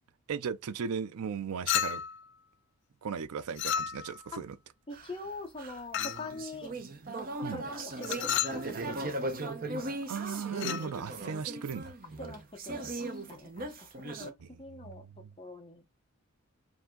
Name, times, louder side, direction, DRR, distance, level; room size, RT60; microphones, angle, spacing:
voice 1, 0.3-2.0 3.0-4.6 7.4-7.6 10.1-11.9 14.8-15.3, right 6 dB, 90° right, 0.4 m, -37 dB
Chink clink, 1.7-2.2 3.6-4.2 5.9-6.3 8.0-8.6 10.5-10.9, left 10 dB, 55° left, 0.4 m, -32 dB
voice 2, 4.9-6.7 7.5-9.9 12.2-14.3 14.6-15.0 15.4-15.8, left 2 dB, 25° left, 0.9 m, -44 dB
sound 1, 4.9-14.3, right 2 dB, 40° right, 0.7 m, -38 dB
4.8 x 2.7 x 3.8 m
head